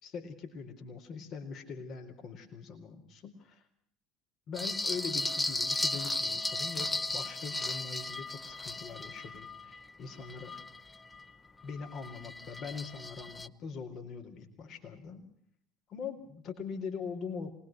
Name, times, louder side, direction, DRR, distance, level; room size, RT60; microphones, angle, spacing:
voice 1, 0.0-3.6 4.5-10.5 11.6-15.2 15.9-17.6, left 5 dB, 50° left, 5 dB, 4.1 m, -42 dB
sound 1, 4.5-11.2 11.7-13.5, left 2 dB, 15° left, 0.9 m, -35 dB
25.5 x 20.5 x 6.0 m, 0.63 s
hypercardioid pair, 70°, 0 cm